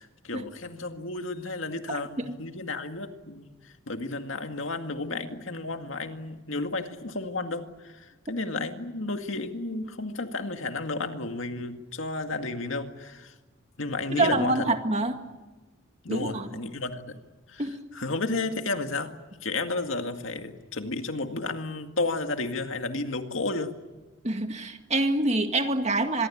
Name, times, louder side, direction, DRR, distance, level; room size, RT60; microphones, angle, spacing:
voice 1, 0.0-3.5 3.9-13.3 13.8-14.6 16.0-17.2 17.5-17.6 17.9-19.2 19.4-23.7, left 3 dB, 75° left, 6 dB, 2.1 m, -32 dB
voice 2, 1.9-2.3 14.1-15.2 16.1-16.5 17.6-17.8 24.2-26.3, right 2 dB, 35° right, 6 dB, 2.0 m, -26 dB
26.0 x 22.5 x 8.6 m, 1.2 s
head